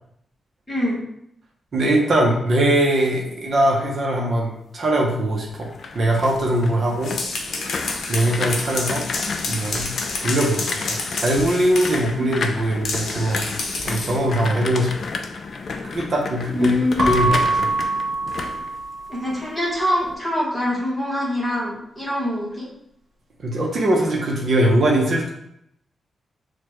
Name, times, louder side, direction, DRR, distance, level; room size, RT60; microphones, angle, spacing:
voice 1, 0.7-1.0 12.2-12.3 16.5-17.2 19.1-22.7, left 1 dB, 10° left, -4 dB, 1.0 m, -24 dB
voice 2, 1.7-5.7 5.9-7.1 8.1-9.0 9.5-9.9 10.2-13.5 13.8-14.9 15.9-16.7 17.1-17.7 23.4-25.3, right 1 dB, 40° right, -2 dB, 0.7 m, -21 dB
sound 1, 5.5-19.5 19.8-20.2, left 4 dB, 45° left, 0.3 m, -32 dB
sound 2, 6.9-12.1 12.8-14.2, left 3 dB, 75° left, 0.7 m, -29 dB
Keyboard (musical) / Bell, 17.0-19.4, right 2 dB, 90° right, 0.7 m, -24 dB
6.4 x 2.2 x 3.0 m, 0.74 s
wide cardioid pair, 180°, 0 cm